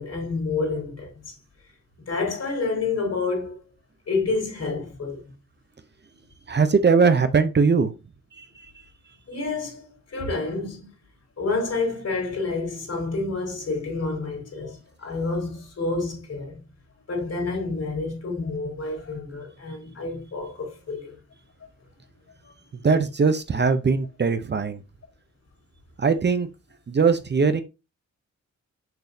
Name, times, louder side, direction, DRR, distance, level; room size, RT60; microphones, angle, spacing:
voice 1, 0.0-1.3 2.0-3.6 4.1-5.2 9.3-10.9 11.4-16.6 17.1-21.2, left 3 dB, 60° left, 3.7 m, -29 dB
voice 2, 6.5-7.9 8.4-8.5 22.8-24.8 26.0-26.5 26.9-27.6, right 5 dB, 40° right, 0.7 m, -20 dB
6.7 x 6.2 x 2.8 m
wide cardioid pair, 120°, 29 cm